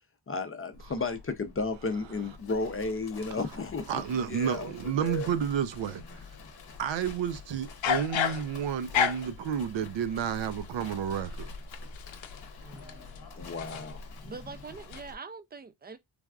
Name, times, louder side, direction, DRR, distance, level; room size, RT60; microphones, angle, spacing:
voice 1, 0.3-4.0 4.3-4.7 5.0-5.3 13.4-14.0, left 3 dB, 30° left, 0.5 m, -33 dB
Livestock farm animals working animals, 0.7-15.1, left 3 dB, 55° left, 0.8 m, -47 dB
voice 2, 3.9-6.0 6.8-11.5, right 8 dB, 70° right, 0.6 m, -31 dB
sound 1, 5.8-6.4 7.6-9.4 10.5-14.3 14.6-15.0, left 9 dB, 85° left, 0.6 m, -33 dB
voice 3, 12.6-13.3 14.2-16.0, right 4 dB, 25° right, 0.4 m, -44 dB
3.3 x 2.3 x 2.3 m
cardioid pair, 65°, 45 cm